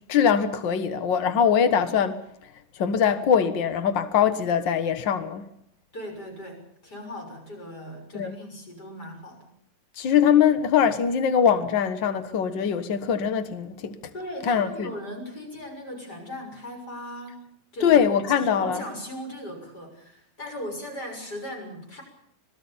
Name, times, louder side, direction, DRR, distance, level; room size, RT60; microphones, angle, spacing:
voice 1, 0.1-2.1 2.8-5.4 8.1-8.4 10.0-13.9 14.5-14.9 17.8-18.8, left 8 dB, 90° left, 1.0 m, -22 dB
voice 2, 5.9-9.5 14.1-18.0 18.4-22.0, equal, 25° left, 6.9 m, -38 dB
26.0 x 19.0 x 7.1 m
omnidirectional pair, 4.2 m